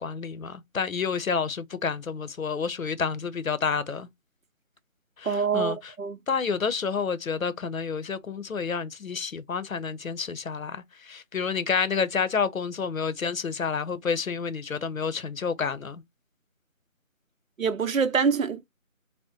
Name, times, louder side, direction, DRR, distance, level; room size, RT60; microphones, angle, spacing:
voice 1, 0.0-4.1 5.2-5.9 6.3-16.0, left 5 dB, 80° left, 0.8 m, -29 dB
voice 2, 5.2-6.2 17.6-18.7, right 6 dB, 75° right, 0.8 m, -25 dB
4.3 x 2.1 x 3.7 m
figure-of-eight pair, 175°, 41 cm